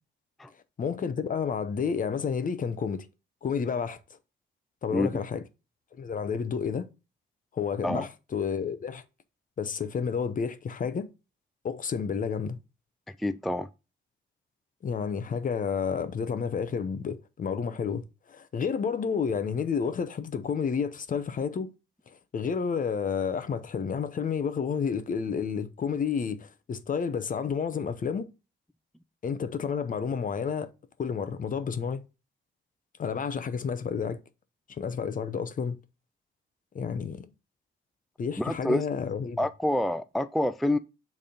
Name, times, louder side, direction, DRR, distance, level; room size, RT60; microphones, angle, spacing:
voice 1, 0.8-3.0 3.4-4.0 4.8-5.4 6.0-6.9 7.5-9.0 9.6-11.1 11.6-12.6 14.8-18.0 18.3-21.7 22.3-28.3 29.2-30.7 31.0-32.0 33.0-34.2 34.8-35.8 36.7-37.2 38.2-39.4, left 6 dB, 45° left, 0.9 m, -30 dB
voice 2, 13.2-13.7 38.4-38.9 39.4-40.8, left 1 dB, ahead, 0.4 m, -27 dB
6.8 x 3.6 x 5.1 m
cardioid pair, 90°, 20 cm